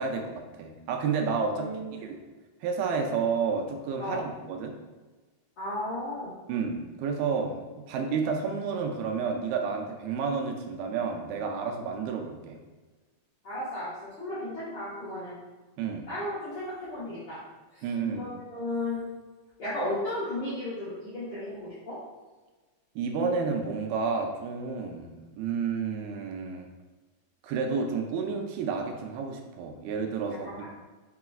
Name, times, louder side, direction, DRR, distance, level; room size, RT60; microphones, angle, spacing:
voice 1, 0.0-1.7 2.0-2.1 2.6-4.7 6.5-12.6 15.8-16.1 17.8-18.3 23.0-26.7 27.4-30.7, right 5 dB, 85° right, 3 dB, 2.4 m, -30 dB
voice 2, 1.5-2.0 4.0-4.3 5.6-6.3 13.4-15.4 16.1-17.4 17.7-17.8 18.1-19.0 19.6-22.0 30.4-30.7, left 1 dB, 65° left, -12 dB, 1.4 m, -34 dB
5.8 x 3.8 x 2.4 m, 1.3 s
omnidirectional pair, 4.4 m